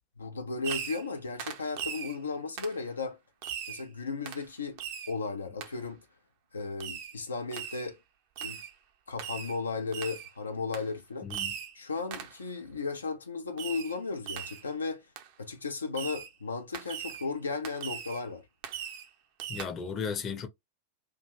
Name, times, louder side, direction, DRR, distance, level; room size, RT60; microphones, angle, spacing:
voice 1, 0.2-3.2 3.7-4.8 5.1-6.0 6.5-8.0 8.4-8.6 9.1-11.3 11.7-15.1 15.4-18.4, left 4 dB, 75° left, 0.4 m, -35 dB
Fireworks, 0.6-1.1 1.4-2.2 2.6-2.8 3.4-3.8 4.3-4.5 4.8-5.1 5.6-5.7 6.8-7.2 7.5-7.9 8.4-8.7 9.2-9.6 9.9-10.3 10.7-10.9 11.3-11.7 12.1-12.4 13.6-14.0 14.3-14.7 15.2-15.3 15.9-16.3 16.7-17.3 17.6-18.2 18.6-19.1 19.4-19.7, right 9 dB, 45° right, 0.5 m, -39 dB
voice 2, 11.2-11.5 19.5-20.5, left 6 dB, 25° left, 0.6 m, -35 dB
2.4 x 2.2 x 2.9 m
figure-of-eight pair, 90°, 0 cm